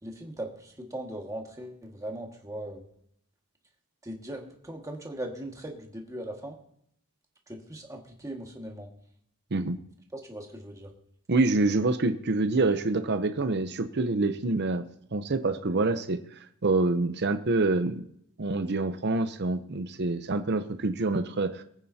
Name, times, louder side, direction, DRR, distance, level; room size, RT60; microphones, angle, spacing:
voice 1, 0.0-2.8 4.0-6.6 7.5-8.9 10.1-10.9, right 1 dB, 15° right, 1 dB, 1.8 m, -39 dB
voice 2, 11.3-14.8 15.1-16.2 16.6-18.1 18.4-21.6, right 3 dB, 50° right, 9 dB, 0.7 m, -26 dB
22.0 x 9.1 x 2.8 m, 0.70 s
head